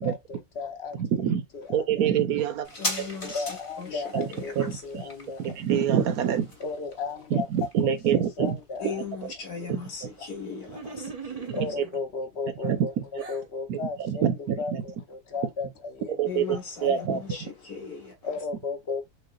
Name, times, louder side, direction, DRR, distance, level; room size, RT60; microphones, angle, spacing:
voice 1, 0.0-1.2 1.5-2.1 3.2-5.6 6.6-9.0 9.6-9.7 10.0-10.1 11.5-17.4 18.2-19.1, left 4 dB, 50° left, 0.9 m, -35 dB
voice 2, 1.0-1.4 1.7-2.7 4.1-4.3 4.6-5.0 5.4-6.5 7.3-8.6 8.8-8.9 9.2-9.3 12.6-13.0 13.7-14.8 16.2-16.4 16.8-17.2, right 8 dB, 75° right, 1.3 m, -25 dB
sound 1, 2.6-9.7 10.0-10.1, left 2 dB, 30° left, 0.6 m, -39 dB
voice 3, 2.8-4.8 8.8-11.6 16.3-18.2, left 5 dB, 80° left, 2.1 m, -38 dB
sound 2, 10.7-12.0 12.6-13.5, right 5 dB, 35° right, 0.6 m, -39 dB
6.5 x 2.5 x 2.4 m
omnidirectional pair, 1.6 m